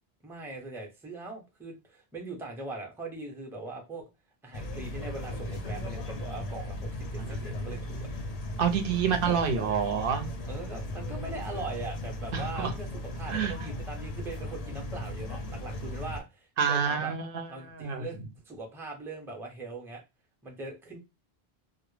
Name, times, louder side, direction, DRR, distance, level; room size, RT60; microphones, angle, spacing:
voice 1, 0.2-4.1 4.4-8.0 9.2-9.4 10.4-12.9 13.1-17.1 17.5-18.2 18.5-20.0 20.4-21.0, right 3 dB, 5° right, 0.4 m, -41 dB
sound 1, 4.5-16.2, left 1 dB, 55° left, 0.5 m, -37 dB
voice 2, 7.2-7.5 8.6-10.3 12.3-12.7 13.3-13.5 16.6-18.1, right 7 dB, 65° right, 0.7 m, -28 dB
2.0 x 2.0 x 3.1 m
omnidirectional pair, 1.0 m